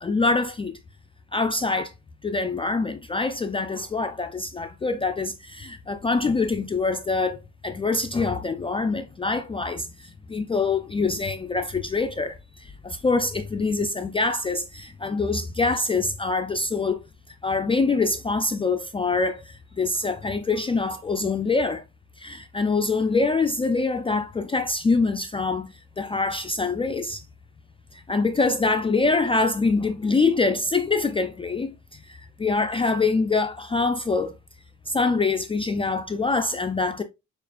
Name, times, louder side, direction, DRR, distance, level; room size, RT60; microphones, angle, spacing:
voice 1, 0.0-0.8 1.3-1.9 2.2-17.0 17.4-21.8 22.2-27.2 27.9-34.3 34.9-37.0, left 3 dB, 20° left, 0.3 m, -25 dB
6.6 x 2.4 x 2.4 m
cardioid pair, 90°, 30 cm